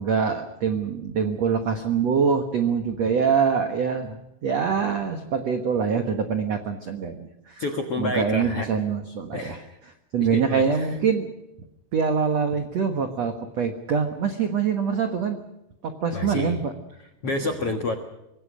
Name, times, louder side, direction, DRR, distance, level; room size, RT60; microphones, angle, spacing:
voice 1, 0.0-7.6 8.0-9.6 10.1-11.3 11.9-15.4 15.8-16.7, right 6 dB, 80° right, 6 dB, 1.5 m, -24 dB
voice 2, 7.6-8.7 9.3-9.7 10.3-10.9 16.1-16.6 17.2-18.0, left 3 dB, 75° left, 5 dB, 1.3 m, -29 dB
25.5 x 21.5 x 6.3 m, 0.89 s
omnidirectional pair, 5.4 m